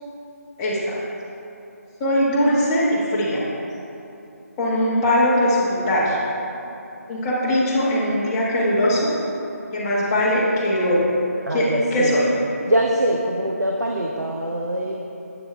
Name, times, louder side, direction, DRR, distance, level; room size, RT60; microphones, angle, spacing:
voice 1, 0.6-0.9 2.0-3.4 4.6-6.2 7.1-9.1 9.7-11.1 11.5-12.3, equal, 20° left, -7 dB, 1.4 m, -20 dB
voice 2, 11.5-12.2 12.7-15.0, right 1 dB, 85° right, 0 dB, 0.7 m, -23 dB
8.3 x 6.9 x 3.3 m, 2.8 s
figure-of-eight pair, 160°, 9 cm